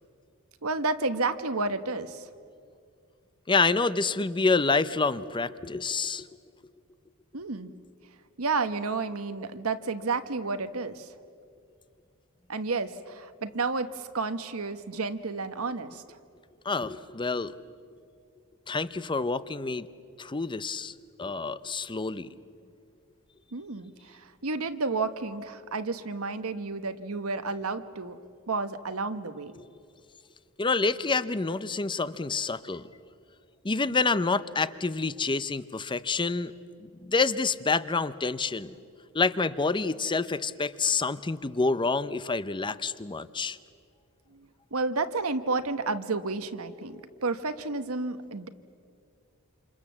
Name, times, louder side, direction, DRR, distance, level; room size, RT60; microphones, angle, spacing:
voice 1, 0.6-2.3 7.3-7.7 8.4-11.1 12.5-16.2 23.5-28.2 28.5-29.5 44.3-48.5, right 3 dB, 70° right, 10 dB, 1.2 m, -31 dB
voice 2, 3.5-6.3 16.6-17.5 18.7-19.9 20.2-20.9 21.2-22.3 29.6-29.7 30.6-32.9 33.6-36.5 36.8-38.8 39.1-43.6, left 4 dB, 20° left, 15 dB, 0.6 m, -27 dB
28.0 x 27.0 x 7.3 m, 2.3 s
head